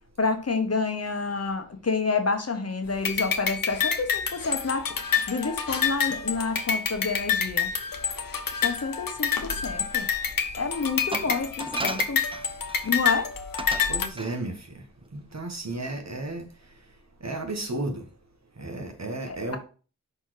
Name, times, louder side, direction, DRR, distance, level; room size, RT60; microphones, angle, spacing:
voice 1, 0.2-4.9 5.3-7.7 8.6-10.1 10.6-12.3 12.8-13.3 19.3-19.6, left 4 dB, 45° left, 6 dB, 1.0 m, -29 dB
sound 1, 3.0-14.1, left 6 dB, 80° left, 0.8 m, -28 dB
Glass, 11.1-12.9 13.6-13.9 14.2-14.4, right 3 dB, 15° right, 0.4 m, -34 dB
voice 2, 13.9-14.7 15.1-16.4 17.2-18.0 18.6-19.6, right 2 dB, 50° right, 4 dB, 1.6 m, -33 dB
5.7 x 4.3 x 4.7 m, 0.37 s
wide cardioid pair, 65°, 34 cm